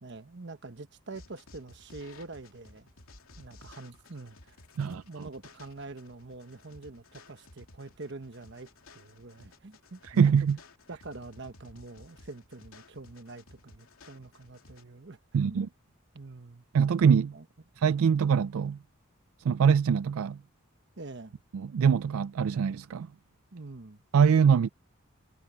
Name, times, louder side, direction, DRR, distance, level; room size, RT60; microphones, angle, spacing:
voice 1, 0.0-2.9 3.4-4.6 4.8-10.3 10.9-15.7 16.1-16.6 17.3-17.5 21.0-21.3 23.5-24.0, right 3 dB, 55° right, 1.2 m, -45 dB
sound 1, 1.1-14.8, left 2 dB, 85° left, 2.7 m, -55 dB
voice 2, 10.1-10.6 15.3-15.7 16.7-17.4 17.8-18.8 19.4-20.4 21.5-23.1 24.1-24.7, right 6 dB, 80° right, 0.4 m, -23 dB
head